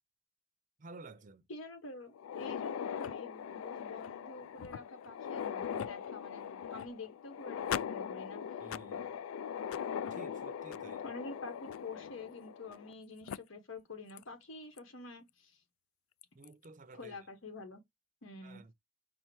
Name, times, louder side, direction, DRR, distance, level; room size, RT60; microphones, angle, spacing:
voice 1, 0.8-1.5 8.6-9.2 10.1-11.0 16.4-17.2 18.4-18.7, right 3 dB, 40° right, 0.5 m, -53 dB
voice 2, 1.5-8.4 11.0-15.6 16.9-17.8 18.2-18.6, left 3 dB, 70° left, 1.0 m, -48 dB
sound 1, 2.1-12.9 13.3-13.4 14.2-14.3 14.8-14.9 16.2-16.5, left 8 dB, 90° left, 0.3 m, -40 dB
5.5 x 2.0 x 4.5 m
head